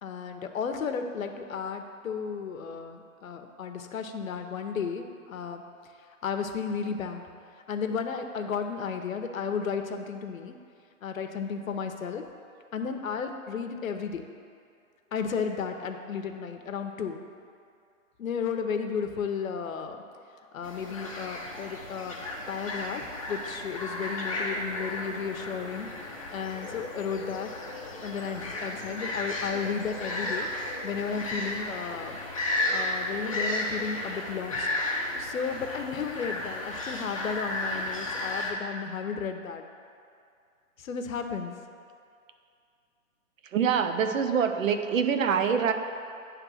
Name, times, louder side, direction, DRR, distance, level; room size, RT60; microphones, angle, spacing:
voice 1, 0.0-5.6 6.2-7.2 7.7-10.5 11.0-12.2 12.7-14.3 15.1-17.2 18.2-20.0 20.5-22.2 22.5-27.5 28.0-30.5 30.8-32.2 32.7-34.7 35.2-39.6 40.8-41.5, left 6 dB, 80° left, 6 dB, 0.8 m, -33 dB
sound 1, 20.6-38.5, left 1 dB, 25° left, 0.5 m, -34 dB
voice 2, 43.5-45.7, right 7 dB, 70° right, 7 dB, 0.7 m, -25 dB
9.1 x 3.3 x 6.1 m, 2.4 s
hypercardioid pair, 175°, 40 cm